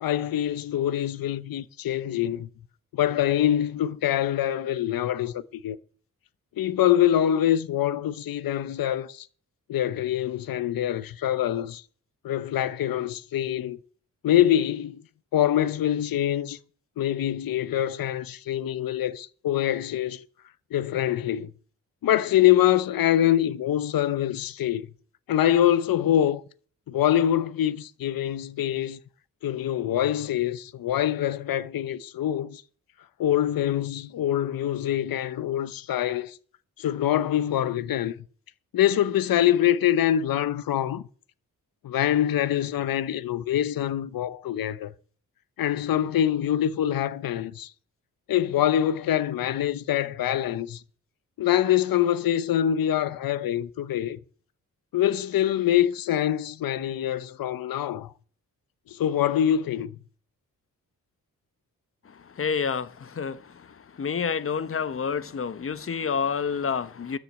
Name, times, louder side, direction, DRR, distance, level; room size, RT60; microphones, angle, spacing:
voice 1, 0.0-2.5 2.9-5.8 6.6-9.3 9.7-11.8 12.2-13.8 14.2-15.0 15.3-16.6 17.0-20.2 20.7-21.5 22.0-24.9 25.3-26.4 26.9-29.0 29.4-32.6 33.2-36.4 36.8-38.1 38.7-41.0 41.8-44.9 45.6-47.7 48.3-50.8 51.4-54.2 54.9-58.1 58.9-60.0, left 11 dB, 80° left, 0.8 m, -24 dB
voice 2, 62.4-63.4 64.0-67.2, left 6 dB, 40° left, 0.9 m, -28 dB
13.0 x 6.3 x 8.6 m
wide cardioid pair, 115°, 34 cm